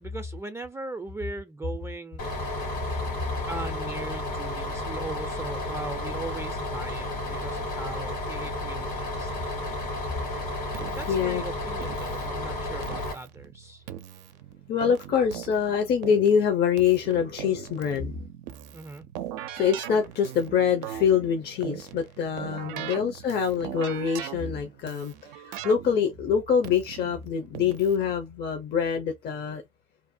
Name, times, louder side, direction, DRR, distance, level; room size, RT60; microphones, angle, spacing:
voice 1, 0.0-2.5 3.5-9.3 10.9-13.8 18.7-19.1 22.6-22.9, right 3 dB, 15° right, 0.4 m, -39 dB
Bus, 2.2-13.1, left 1 dB, 85° left, 1.4 m, -32 dB
Keyboard (musical), 10.7-28.1, right 11 dB, 80° right, 0.4 m, -41 dB
voice 2, 11.1-11.4 14.7-18.1 19.5-29.6, left 7 dB, 55° left, 0.7 m, -25 dB
2.6 x 2.1 x 2.6 m
hypercardioid pair, 65°, 21 cm